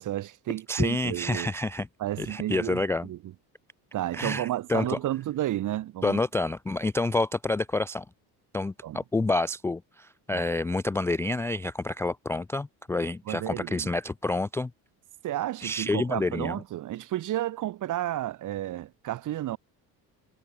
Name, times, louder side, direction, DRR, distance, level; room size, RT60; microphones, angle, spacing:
voice 1, 0.0-1.5 2.0-3.2 3.9-6.2 8.8-9.0 10.3-10.4 13.3-13.9 15.2-19.6, right 13 dB, 50° right, 5.0 m, -32 dB
voice 2, 0.7-1.9 2.2-3.1 4.1-5.0 6.0-8.0 8.5-14.7 15.6-16.6, left 2 dB, 5° left, 0.3 m, -28 dB
cardioid pair, 175°, 39 cm